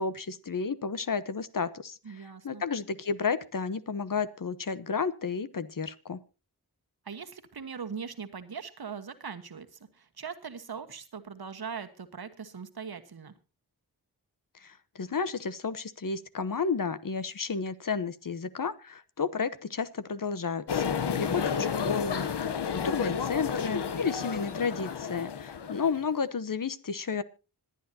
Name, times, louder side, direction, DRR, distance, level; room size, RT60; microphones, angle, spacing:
voice 1, 0.0-6.2 14.6-27.2, left 5 dB, 55° left, 14 dB, 1.0 m, -32 dB
voice 2, 2.0-2.6 7.0-13.3 21.1-21.6, right 6 dB, 65° right, 8 dB, 1.4 m, -41 dB
sound 1, 20.7-26.1, left 6 dB, 90° left, 0.9 m, -31 dB
26.0 x 9.2 x 2.8 m, 0.31 s
cardioid pair, 50°, 40 cm